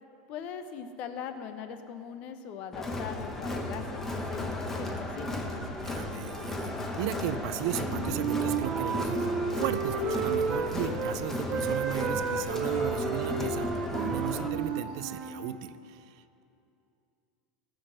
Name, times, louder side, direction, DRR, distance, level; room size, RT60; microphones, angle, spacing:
voice 1, 0.3-5.5, left 7 dB, 50° left, 8 dB, 1.0 m, -41 dB
Crowd, 2.7-14.5, left 2 dB, 10° left, 1.1 m, -35 dB
voice 2, 5.8-6.7 7.0-9.3 9.5-16.4, right 11 dB, 70° right, 12 dB, 0.6 m, -35 dB
Wind instrument woodwind instrument, 7.8-11.2 11.5-15.4, right 5 dB, 40° right, 1.5 m, -31 dB
18.5 x 6.4 x 6.4 m, 2.6 s
supercardioid pair, 140°, 3 cm